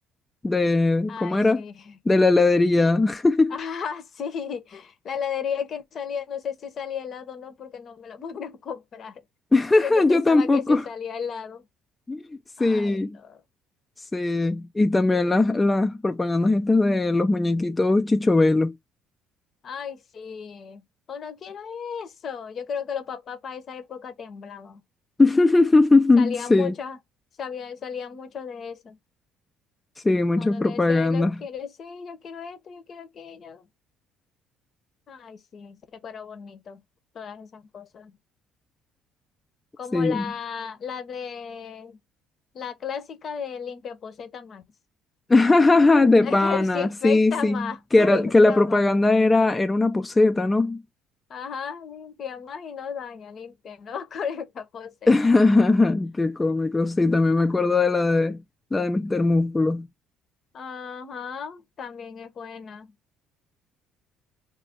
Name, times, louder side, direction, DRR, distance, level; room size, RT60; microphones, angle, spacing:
voice 1, 0.4-1.6 2.1-3.6 9.5-10.8 12.1-12.3 12.6-13.2 14.1-18.8 25.2-26.7 30.0-31.4 39.9-40.2 45.3-47.6 47.9-50.8 55.1-58.4 58.7-59.9, left 2 dB, 20° left, 0.3 m, -20 dB
voice 2, 1.1-2.0 3.5-9.2 9.7-11.7 12.6-13.4 15.1-15.4 19.6-24.8 26.2-27.0 27.4-29.0 30.4-33.7 35.1-36.8 37.1-38.2 39.8-42.0 42.5-44.6 46.2-48.8 51.3-55.6 60.5-62.9, left 7 dB, 50° left, 0.7 m, -35 dB
2.4 x 2.2 x 3.6 m
supercardioid pair, 80°, 0 cm